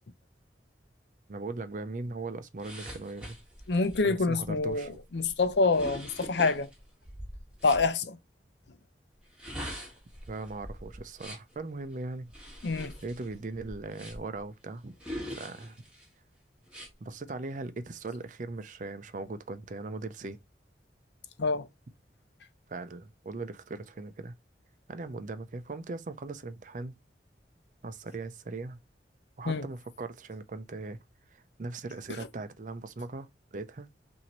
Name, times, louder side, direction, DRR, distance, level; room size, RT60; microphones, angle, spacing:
voice 1, 1.3-3.4 4.0-4.9 10.3-12.3 13.0-15.0 15.3-15.8 17.0-20.4 22.7-24.3 24.9-26.9 27.8-28.8 29.4-31.0 31.3-33.9, right 3 dB, 45° right, 0.5 m, -39 dB
sound 1, 2.6-7.9 9.2-11.6 12.3-14.4 15.0-16.1 16.7-16.9, equal, 5° right, 1.4 m, -43 dB
voice 2, 3.7-6.7 7.6-8.2 12.6-12.9 21.4-21.7 29.4-29.7 32.1-32.3, left 3 dB, 75° left, 0.6 m, -27 dB
5.9 x 2.7 x 2.9 m
head